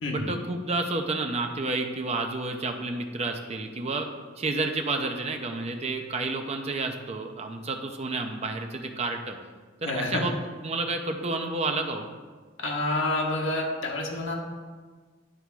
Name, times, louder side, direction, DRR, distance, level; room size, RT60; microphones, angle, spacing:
voice 1, 0.1-4.1 4.4-9.4 9.8-10.3 10.6-12.1, right 3 dB, 35° right, 4 dB, 0.6 m, -30 dB
voice 2, 9.8-10.2 12.6-14.3, left 2 dB, 70° left, -1 dB, 1.6 m, -28 dB
9.8 x 3.5 x 6.1 m, 1.4 s
head